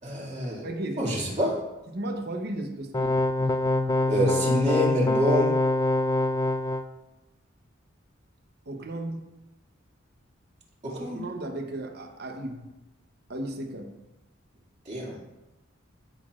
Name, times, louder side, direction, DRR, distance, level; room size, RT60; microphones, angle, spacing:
voice 1, 0.0-0.6 1.0-1.5 4.1-5.5 10.8-11.2 14.9-15.2, equal, 35° right, -3 dB, 2.3 m, -27 dB
voice 2, 0.6-1.1 1.9-3.1 8.7-9.3 10.8-12.7 13.3-13.9, right 1 dB, 50° right, 4 dB, 0.9 m, -35 dB
sound 1, 2.9-6.8, left 2 dB, 15° left, 0.3 m, -24 dB
14.5 x 6.3 x 2.5 m, 1.0 s
head